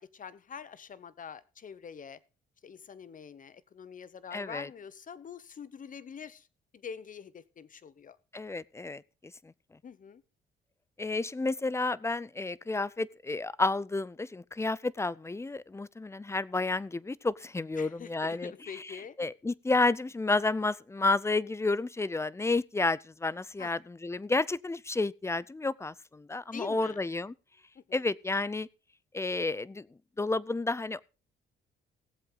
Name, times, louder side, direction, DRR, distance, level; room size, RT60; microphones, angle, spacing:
voice 1, 0.0-2.2 2.6-6.5 6.7-8.2 9.8-10.2 17.8-19.2 23.6-23.7 26.5-27.0 27.7-28.0, left 7 dB, 40° left, 0.9 m, -45 dB
voice 2, 4.3-4.7 8.3-9.0 9.4-9.5 11.0-27.3 27.9-28.7 29.1-29.9 30.2-31.0, left 3 dB, 15° left, 0.5 m, -31 dB
18.0 x 7.7 x 3.9 m
cardioid pair, 90°, 20 cm